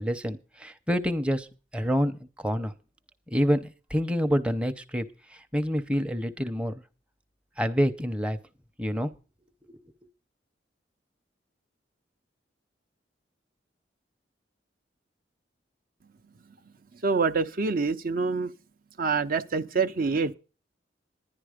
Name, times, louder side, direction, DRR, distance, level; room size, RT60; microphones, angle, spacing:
voice 1, 0.0-1.5 1.7-2.7 3.3-5.1 5.3-6.7 7.6-8.4 8.8-9.1 9.7-9.8, equal, 5° right, 0.7 m, -27 dB
voice 2, 17.0-18.5 19.0-20.3, right 4 dB, 50° right, 0.6 m, -26 dB
11.0 x 10.5 x 5.0 m
head